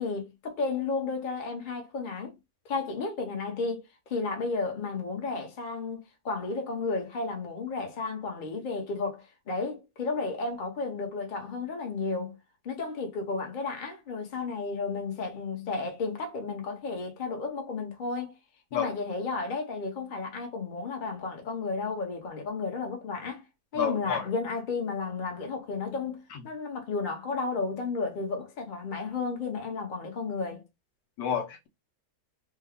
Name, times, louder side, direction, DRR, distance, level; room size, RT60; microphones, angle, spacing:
voice 1, 0.0-2.3 2.6-12.4 12.6-18.3 18.7-23.4 23.7-30.6, left 4 dB, 35° left, 0.8 m, -33 dB
voice 2, 23.8-24.3 26.3-26.4 31.2-31.7, left 8 dB, 85° left, 1.4 m, -30 dB
3.4 x 2.2 x 3.6 m
omnidirectional pair, 1.8 m